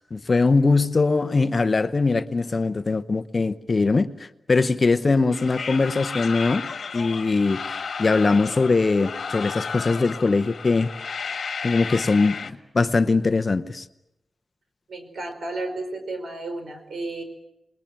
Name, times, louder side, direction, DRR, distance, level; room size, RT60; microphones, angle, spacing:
voice 1, 0.0-4.1 4.5-6.6 6.9-10.9 11.2-11.3 11.6-13.8, left 3 dB, 40° left, 12 dB, 0.9 m, -21 dB
sound 1, 5.3-12.5, left 5 dB, 65° left, 1.6 m, -33 dB
voice 2, 14.9-17.2, right 2 dB, 70° right, 7 dB, 5.0 m, -32 dB
28.5 x 21.5 x 7.6 m, 0.85 s
wide cardioid pair, 120°, 0 cm